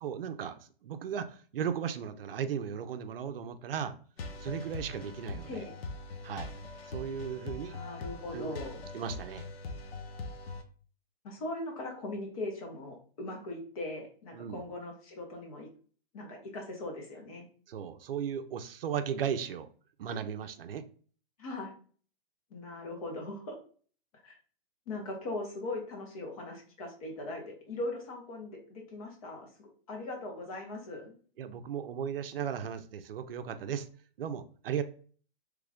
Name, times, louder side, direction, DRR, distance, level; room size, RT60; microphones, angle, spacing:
voice 1, 0.0-3.9 4.4-5.7 6.2-6.5 6.9-7.8 8.3-8.6 8.9-9.5 14.3-14.6 17.7-19.7 20.0-20.8 31.4-33.9 34.2-34.8, right 8 dB, 70° right, 9 dB, 0.5 m, -36 dB
sound 1, 4.2-10.6, left 3 dB, 90° left, 0.7 m, -42 dB
voice 2, 7.6-8.8 11.2-15.7 16.1-17.5 21.4-21.7 22.5-23.6 24.2-24.3 24.9-31.2, left 2 dB, 35° left, 1 dB, 1.1 m, -40 dB
3.1 x 2.5 x 3.4 m, 0.43 s
hypercardioid pair, 165°, 30 cm